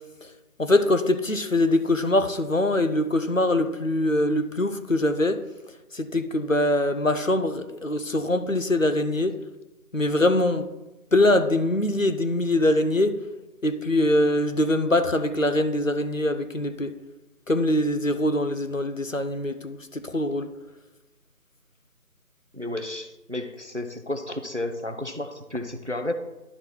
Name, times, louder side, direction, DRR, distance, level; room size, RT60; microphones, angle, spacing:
voice 1, 0.6-5.4 5.9-9.4 9.9-10.7 11.1-13.2 13.6-16.9 17.5-20.5, left 1 dB, 55° left, 0.5 m, -23 dB
voice 2, 22.5-26.1, left 1 dB, 50° right, 0.5 m, -32 dB
11.0 x 3.9 x 4.4 m
figure-of-eight pair, 180°, 47 cm